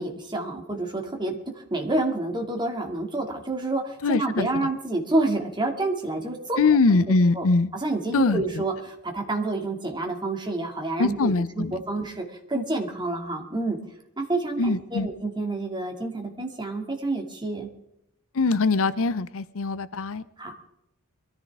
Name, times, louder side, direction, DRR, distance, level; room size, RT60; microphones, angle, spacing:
voice 1, 0.0-6.6 7.0-7.1 7.3-7.5 7.7-13.8 14.2-17.7 20.4-20.5, right 2 dB, 20° right, 2 dB, 2.4 m, -28 dB
voice 2, 4.0-4.7 6.6-7.7 8.1-8.4 11.0-11.8 14.6-15.1 18.3-20.2, left 3 dB, 65° left, 15 dB, 0.6 m, -22 dB
23.0 x 14.0 x 3.6 m, 0.80 s
head